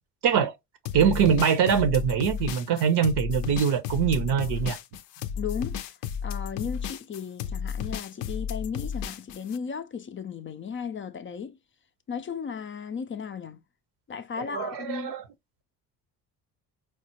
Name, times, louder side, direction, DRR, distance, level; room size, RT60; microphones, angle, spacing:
voice 1, 0.2-0.6 0.9-4.8 14.4-15.2, right 7 dB, 60° right, 0.7 m, -23 dB
sound 1, 0.9-9.6, left 8 dB, 80° left, 0.5 m, -33 dB
voice 2, 5.4-5.9 6.2-11.6 12.1-13.6 14.1-15.1, left 6 dB, 30° left, 0.4 m, -35 dB
4.5 x 2.0 x 2.9 m
hypercardioid pair, 55°, 45 cm